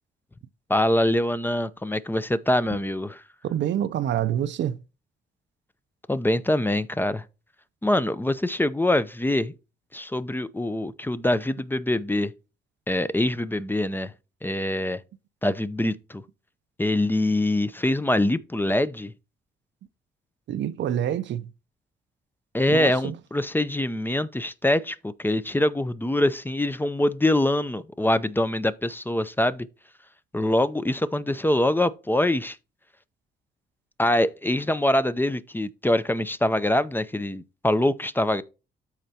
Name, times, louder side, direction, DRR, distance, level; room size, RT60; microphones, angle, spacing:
voice 1, 0.7-3.2 6.1-7.2 7.8-9.5 9.9-12.3 12.9-14.1 14.4-15.0 15.4-16.2 16.8-19.1 22.5-29.7 30.3-32.6 34.0-38.4, left 1 dB, 10° left, 0.6 m, -24 dB
voice 2, 3.4-4.8 20.5-21.5 22.7-23.2, right 10 dB, 65° right, 0.6 m, -27 dB
13.0 x 4.5 x 2.8 m
cardioid pair, 90°, 20 cm